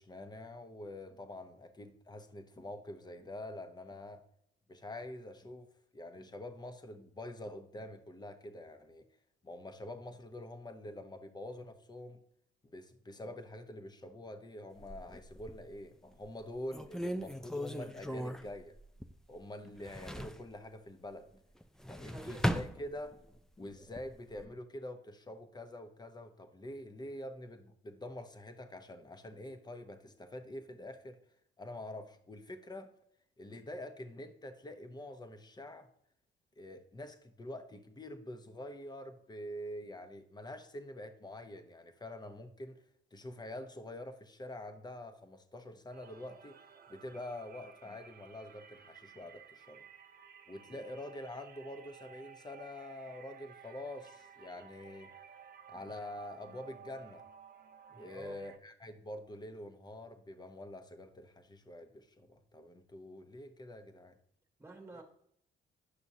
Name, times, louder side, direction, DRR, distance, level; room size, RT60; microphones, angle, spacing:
voice 1, 0.0-4.2 4.7-5.7 5.9-9.1 9.4-12.2 12.6-18.8 19.3-21.4 21.9-23.2 23.6-31.2 31.6-32.9 33.4-35.9 36.6-42.8 43.1-46.6 46.9-49.9 50.5-55.1 55.7-57.2 58.0-64.2 64.9-65.0, left 1 dB, 20° left, 0.8 m, -46 dB
sound 1, 14.8-15.7 16.3-16.4 16.7-19.4 19.6-20.5 21.6-23.4 23.8-24.5, equal, 5° left, 0.4 m, -38 dB
voice 2, 21.8-22.5 50.6-50.8 57.9-58.4 64.6-65.0, right 3 dB, 15° right, 1.5 m, -50 dB
sound 2, 45.9-58.6, right 7 dB, 50° right, 0.7 m, -56 dB
9.8 x 6.0 x 2.7 m
cardioid pair, 90°, 20 cm